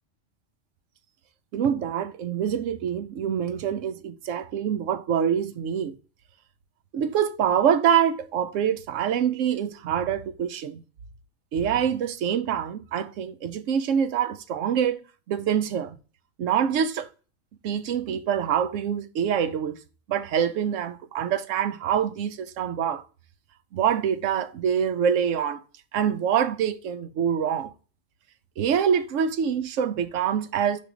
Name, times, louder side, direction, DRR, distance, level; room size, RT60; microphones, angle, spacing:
voice 1, 1.5-6.0 6.9-10.8 11.5-15.0 15.3-16.0 16.4-17.1 17.6-19.8 20.1-23.0 23.7-25.6 25.9-27.7 28.6-30.8, right 8 dB, 80° right, 1.0 m, -25 dB
5.3 x 3.7 x 5.0 m
omnidirectional pair, 1.3 m